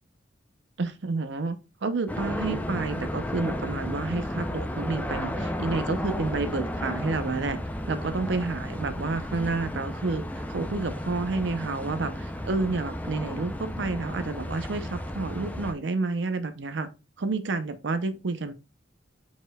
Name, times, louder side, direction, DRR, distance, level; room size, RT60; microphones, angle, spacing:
voice 1, 0.8-7.6 7.9-16.9 17.2-18.5, right 3 dB, 65° right, 0.6 m, -30 dB
sound 1, 2.1-15.7, left 1 dB, 10° left, 0.4 m, -33 dB
5.0 x 4.2 x 2.2 m
head